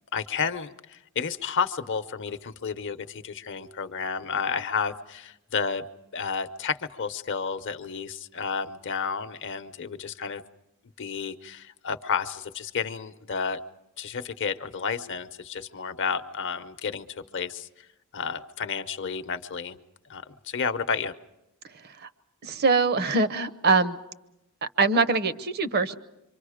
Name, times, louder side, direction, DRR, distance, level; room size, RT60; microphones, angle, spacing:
voice 1, 0.1-5.9 6.1-10.4 11.0-13.6 14.0-17.1 17.3-17.7 18.1-19.8 20.1-21.1, left 6 dB, 55° left, 10 dB, 0.8 m, -31 dB
voice 2, 22.4-24.0 24.6-25.9, right 4 dB, 45° right, 14 dB, 0.8 m, -23 dB
27.5 x 25.0 x 5.0 m, 0.92 s
head